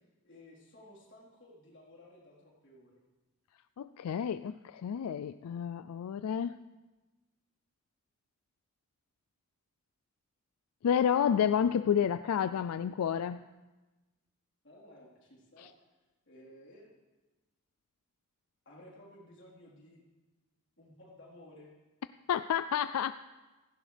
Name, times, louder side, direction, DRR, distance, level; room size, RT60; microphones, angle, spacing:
voice 1, 0.2-3.0 14.6-15.7 16.3-16.9 18.7-20.0 20.8-21.7, left 1 dB, 55° left, -5 dB, 4.0 m, -55 dB
voice 2, 3.8-6.6 10.8-13.5 15.6-15.7 22.3-23.1, left 8 dB, 90° left, 13 dB, 0.4 m, -30 dB
17.0 x 15.5 x 3.4 m, 1.2 s
head